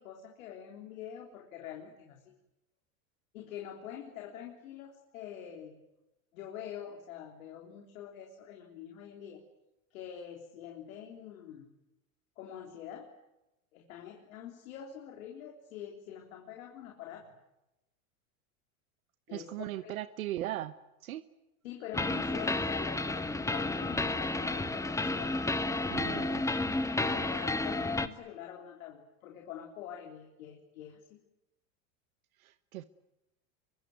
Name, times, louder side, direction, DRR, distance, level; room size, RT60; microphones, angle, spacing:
voice 1, 0.0-2.4 3.3-5.8 6.3-9.4 9.9-11.7 12.4-13.1 13.7-17.3 19.3-19.5 19.8-20.0 21.6-26.4 27.0-31.2, left 9 dB, 75° left, 2 dB, 3.6 m, -45 dB
voice 2, 19.3-20.7 21.0-21.2 25.9-26.4 32.4-32.8, right 14 dB, 80° right, 12 dB, 1.1 m, -38 dB
sound 1, 21.9-28.1, left 2 dB, 5° left, 1.3 m, -31 dB
26.5 x 23.0 x 9.4 m, 0.96 s
hypercardioid pair, 105°, 41 cm